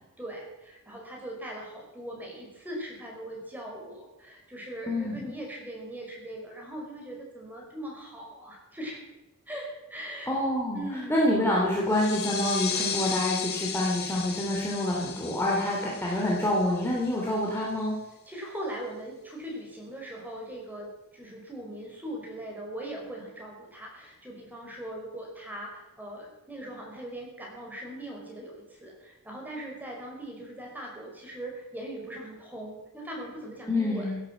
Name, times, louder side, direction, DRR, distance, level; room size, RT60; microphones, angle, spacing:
voice 1, 0.2-9.0 9.5-10.3 10.7-11.4 18.3-34.2, right 1 dB, 10° right, -2 dB, 5.4 m, -40 dB
voice 2, 4.9-5.3 10.3-10.8 11.1-18.0 33.7-34.2, left 1 dB, 10° left, -4 dB, 3.0 m, -27 dB
sound 1, 11.9-17.2, left 7 dB, 50° left, 2.3 m, -35 dB
17.0 x 9.6 x 7.7 m, 0.96 s
head